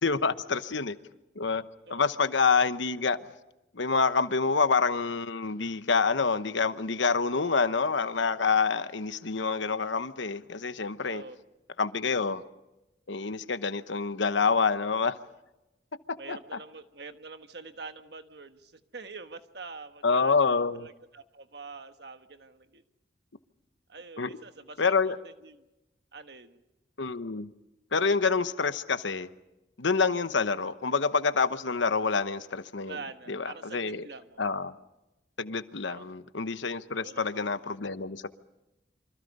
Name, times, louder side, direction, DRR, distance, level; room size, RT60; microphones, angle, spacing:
voice 1, 0.0-1.0 1.3-1.6 1.9-3.2 3.7-11.2 11.8-12.4 13.1-15.2 16.1-16.6 20.0-20.9 24.2-24.3 24.8-25.2 27.0-27.5 27.9-29.3 29.8-33.0 33.3-34.1 34.4-34.7 35.4-38.3, left 4 dB, 75° left, 1.0 m, -27 dB
voice 2, 1.9-2.2 11.0-11.4 16.2-22.8 23.9-24.8 25.0-25.7 26.1-26.6 32.8-34.4 35.8-36.1 36.9-37.7, right 4 dB, 60° right, 1.4 m, -45 dB
28.0 x 25.5 x 5.4 m
head